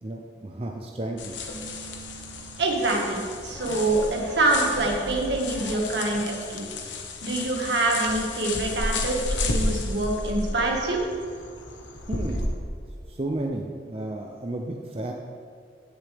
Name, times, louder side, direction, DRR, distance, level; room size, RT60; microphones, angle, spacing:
voice 1, 0.0-1.4 12.1-12.5 13.1-15.1, right 1 dB, 30° right, 1 dB, 0.6 m, -32 dB
sound 1, 1.2-12.5, left 2 dB, 85° left, 1.1 m, -33 dB
Keyboard (musical), 1.5-3.5, right 6 dB, 5° right, 1.6 m, -47 dB
voice 2, 2.6-6.7 7.2-11.0, right 2 dB, 70° right, -1 dB, 1.8 m, -25 dB
sound 2, 3.5-6.2 6.7-6.8, equal, 15° left, 1.4 m, -39 dB
15.5 x 6.6 x 3.5 m, 2.2 s
head